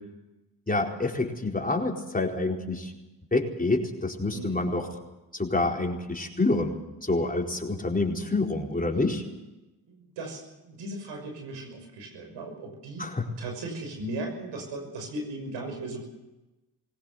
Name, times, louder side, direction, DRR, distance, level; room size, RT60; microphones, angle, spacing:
voice 1, 0.7-2.9 3.3-4.9 5.3-6.7 7.0-9.2 13.0-13.3, left 2 dB, 20° left, 1 dB, 4.5 m, -27 dB
voice 2, 4.3-4.6 9.9-16.1, right 2 dB, 85° right, 3 dB, 6.1 m, -37 dB
21.0 x 18.0 x 8.1 m, 1.0 s
supercardioid pair, 50°, 42 cm